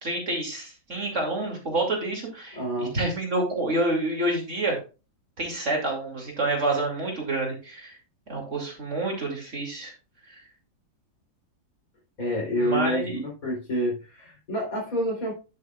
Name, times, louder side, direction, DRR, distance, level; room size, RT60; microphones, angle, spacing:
voice 1, 0.0-4.8 5.4-8.0 8.3-9.9 10.3-10.4 12.5-13.2, right 2 dB, 45° right, 0 dB, 2.8 m, -28 dB
voice 2, 2.5-3.0 12.2-15.3, equal, 50° left, -1 dB, 3.9 m, -28 dB
10.5 x 8.1 x 2.4 m, 0.32 s
omnidirectional pair, 1.8 m